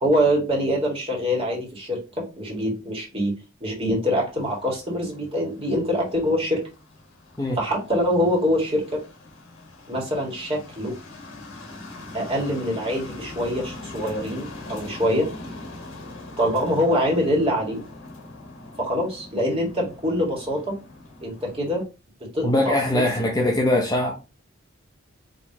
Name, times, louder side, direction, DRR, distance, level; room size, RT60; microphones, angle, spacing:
voice 1, 0.0-3.3 3.6-6.6 7.5-9.0 9.9-11.0 12.1-15.3 16.4-17.8 18.8-20.8 21.2-21.8 22.3-23.1, equal, 25° right, 1.9 m, -24 dB
sound 1, 4.4-21.8, left 2 dB, 75° left, 1.4 m, -42 dB
voice 2, 22.4-24.2, left 1 dB, 20° left, 0.7 m, -21 dB
5.2 x 3.0 x 2.9 m
head